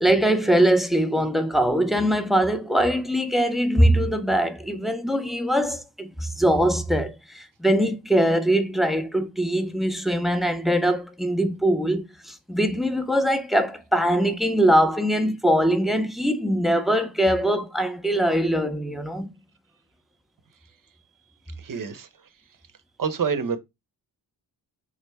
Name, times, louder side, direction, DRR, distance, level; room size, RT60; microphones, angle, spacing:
voice 1, 0.0-19.3, equal, ahead, 0.6 m, -22 dB
voice 2, 21.6-22.1 23.0-23.6, right 6 dB, 50° right, 0.6 m, -27 dB
3.8 x 2.1 x 3.3 m
cardioid pair, 45°, 43 cm